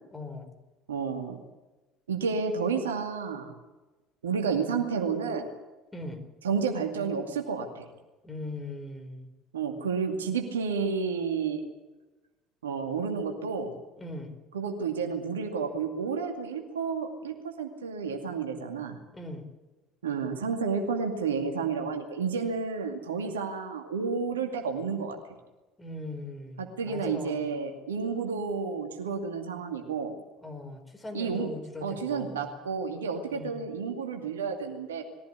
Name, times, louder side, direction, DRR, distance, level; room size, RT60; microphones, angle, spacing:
voice 1, 0.1-0.5 5.9-6.3 8.2-9.3 14.0-14.4 19.1-19.5 25.8-27.4 30.4-32.5 33.3-33.6, left 2 dB, 15° left, 4 dB, 4.5 m, -40 dB
voice 2, 0.9-1.4 2.1-3.6 4.2-5.5 6.4-7.9 9.5-11.6 12.6-13.7 14.5-19.0 20.0-25.2 26.6-30.1 31.1-31.5 31.8-35.0, right 5 dB, 75° right, 3 dB, 2.4 m, -31 dB
21.5 x 15.5 x 8.3 m, 1.1 s
figure-of-eight pair, 60°, 0 cm